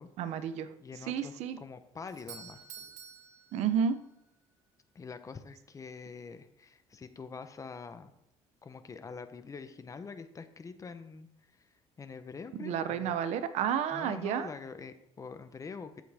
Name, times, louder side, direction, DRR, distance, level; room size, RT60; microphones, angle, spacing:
voice 1, 0.2-0.7 1.1-1.6 3.5-4.0 12.5-14.5, right 8 dB, 75° right, 11 dB, 0.9 m, -31 dB
voice 2, 0.8-2.6 4.9-8.1 8.6-11.3 12.0-13.2 13.9-16.0, left 5 dB, 30° left, 10 dB, 1.0 m, -45 dB
Doorbell, 2.1-4.2, right 7 dB, 90° right, 1.8 m, -50 dB
13.0 x 7.6 x 3.6 m, 0.80 s
cardioid pair, 110°, 12 cm